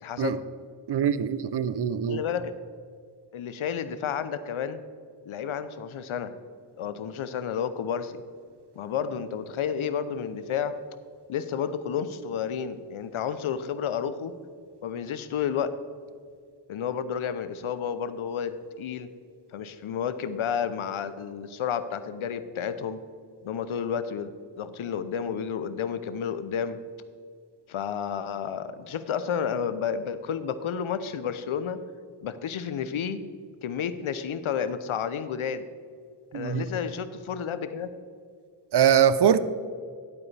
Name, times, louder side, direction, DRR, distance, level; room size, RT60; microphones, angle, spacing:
voice 1, 0.0-0.4 2.1-2.5 3.3-4.8 5.2-6.3 6.8-8.1 8.8-10.8 11.3-14.3 14.8-15.8 16.7-19.1 19.5-23.0 23.4-26.8 27.7-31.8 32.2-33.2 33.6-35.7 36.3-37.9, left 7 dB, 75° left, 13 dB, 0.7 m, -31 dB
voice 2, 0.9-2.2 36.3-36.6 38.7-39.4, right 8 dB, 55° right, 15 dB, 0.5 m, -22 dB
11.0 x 8.4 x 3.3 m, 2.1 s
cardioid pair, 60°, 49 cm